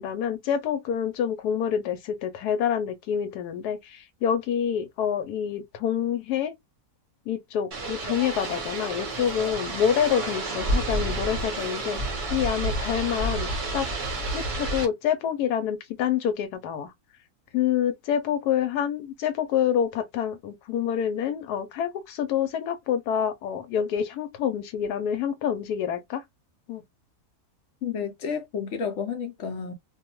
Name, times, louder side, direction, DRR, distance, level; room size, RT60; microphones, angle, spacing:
voice 1, 0.0-6.5 7.3-12.0 12.3-13.9 14.3-16.9 17.5-26.2 26.7-26.8, left 9 dB, 85° left, 1.1 m, -27 dB
sound 1, 7.7-14.9, right 2 dB, 40° right, 0.8 m, -30 dB
voice 2, 27.8-29.7, left 6 dB, 65° left, 0.8 m, -31 dB
2.6 x 2.2 x 2.9 m
omnidirectional pair, 1.6 m